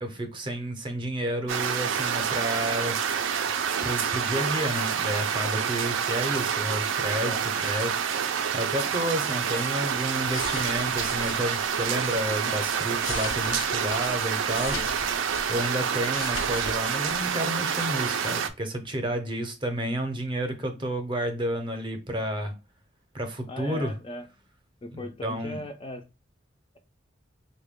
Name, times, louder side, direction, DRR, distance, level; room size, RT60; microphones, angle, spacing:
voice 1, 0.0-3.0 3.8-14.8 15.5-22.5 23.1-23.9 24.9-25.6, right 1 dB, 25° right, 0.6 m, -31 dB
sound 1, 1.5-18.5, right 7 dB, 75° right, 0.4 m, -28 dB
sound 2, 10.3-12.3 12.8-15.7 16.0-16.8 17.1-17.3, left 3 dB, 90° left, 0.9 m, -38 dB
voice 2, 23.5-24.3 24.8-26.1, left 1 dB, 25° left, 0.3 m, -38 dB
3.5 x 2.2 x 3.5 m
head